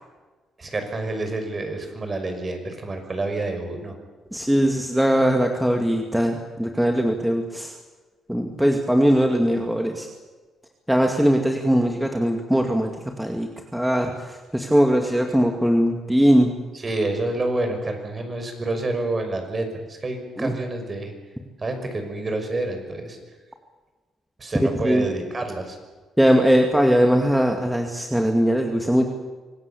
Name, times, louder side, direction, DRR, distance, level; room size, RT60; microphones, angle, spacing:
voice 1, 0.6-4.0 16.7-21.1 21.6-23.2 24.4-25.8, right 2 dB, 30° right, 6 dB, 5.9 m, -28 dB
voice 2, 4.3-7.7 8.3-10.1 10.9-12.9 13.2-16.6 20.4-20.5 24.8-25.0 26.2-29.1, equal, 5° right, 3 dB, 2.3 m, -20 dB
25.5 x 18.5 x 8.6 m, 1.3 s
cardioid pair, 90°, 0 cm